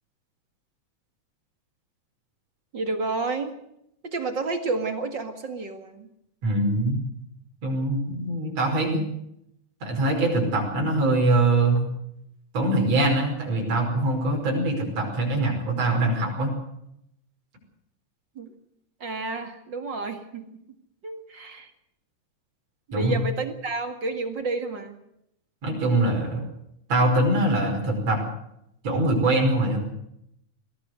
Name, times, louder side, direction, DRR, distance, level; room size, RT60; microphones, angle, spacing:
voice 1, 2.7-3.5 4.0-6.1 18.4-18.5 19.0-20.6 21.0-21.7 22.9-25.0, right 3 dB, 40° right, 7 dB, 2.4 m, -30 dB
voice 2, 6.4-7.0 7.6-9.1 9.8-11.8 12.5-16.5 22.9-23.2 25.6-26.4 26.9-28.2 28.8-29.8, right 2 dB, 60° right, -1 dB, 6.4 m, -23 dB
21.5 x 17.0 x 8.0 m, 0.78 s
omnidirectional pair, 3.3 m